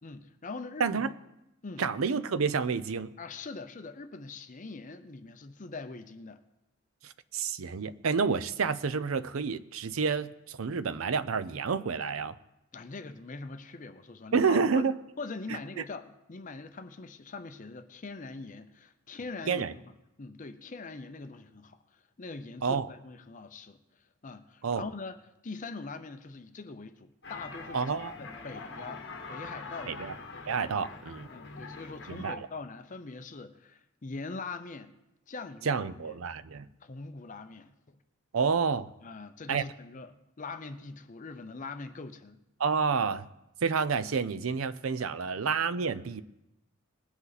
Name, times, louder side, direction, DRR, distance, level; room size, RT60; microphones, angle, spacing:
voice 1, 0.0-1.1 1.6-1.8 3.2-6.4 12.7-14.9 15.2-19.8 20.2-21.8 22.2-23.8 24.2-30.0 31.3-35.0 35.3-36.2 36.8-38.0 39.0-42.4 45.0-45.1, left 3 dB, 40° left, 9 dB, 0.6 m, -42 dB
voice 2, 0.8-1.1 1.8-3.1 7.0-12.3 14.3-15.0 15.8-15.9 19.5-19.7 22.6-22.9 24.6-24.9 27.7-28.1 29.9-30.1 30.5-31.3 32.1-32.4 35.7-36.7 38.3-38.9 39.5-39.6 42.6-43.3 43.6-46.2, right 5 dB, 80° right, 14 dB, 0.5 m, -29 dB
sound 1, 27.2-32.3, left 3 dB, 55° left, 1.2 m, -43 dB
20.0 x 8.1 x 4.1 m, 0.89 s
head